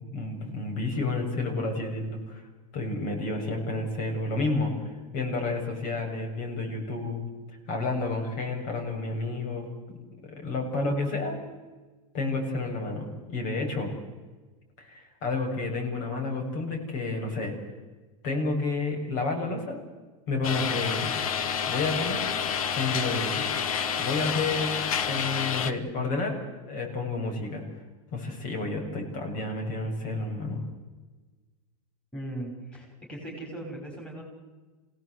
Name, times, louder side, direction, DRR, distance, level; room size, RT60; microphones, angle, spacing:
voice 1, 0.1-2.4 2.7-4.7 5.1-7.3 7.7-9.7 10.2-11.4 12.1-13.9 14.8-17.5 18.2-19.8 20.3-21.1 21.7-22.3 22.8-23.5 24.0-26.4 26.6-27.6 28.1-30.6, left 3 dB, 50° left, 1 dB, 7.2 m, -30 dB
sound 1, 20.4-25.7, left 7 dB, 80° left, 1.8 m, -29 dB
voice 2, 32.1-34.2, right 1 dB, 5° left, -1 dB, 5.7 m, -38 dB
27.5 x 17.5 x 8.0 m, 1.3 s
supercardioid pair, 160°, 18 cm